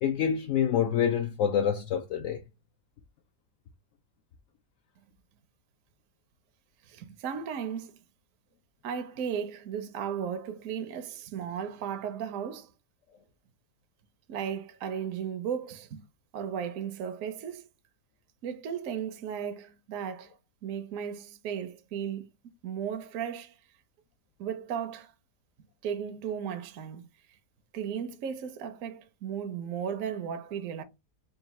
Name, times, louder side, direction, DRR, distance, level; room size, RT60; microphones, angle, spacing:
voice 1, 0.0-2.4, left 8 dB, 70° left, 0.8 m, -27 dB
voice 2, 6.9-7.9 8.8-12.7 14.3-16.0 16.3-17.7 18.4-20.4 20.6-22.3 22.6-23.6 24.4-25.1 25.8-27.1 27.7-30.8, right 8 dB, 65° right, 0.9 m, -35 dB
3.9 x 2.3 x 4.0 m
omnidirectional pair, 1.8 m